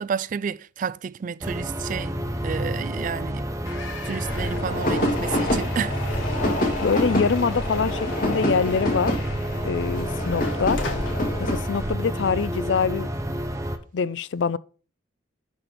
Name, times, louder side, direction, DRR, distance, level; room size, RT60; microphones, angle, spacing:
voice 1, 0.0-2.1 2.4-3.4 4.1-5.9, right 6 dB, 45° right, 0.3 m, -30 dB
sound 1, 1.4-13.8, right 1 dB, 15° right, 0.8 m, -30 dB
sound 2, 3.7-9.9 10.3-11.2, left 3 dB, 85° left, 1.6 m, -40 dB
sound 3, 4.2-11.9, left 1 dB, 45° left, 2.0 m, -27 dB
voice 2, 6.8-9.1 9.6-10.8 11.4-13.1 13.9-14.6, left 5 dB, 70° left, 0.4 m, -24 dB
10.5 x 4.3 x 5.1 m
head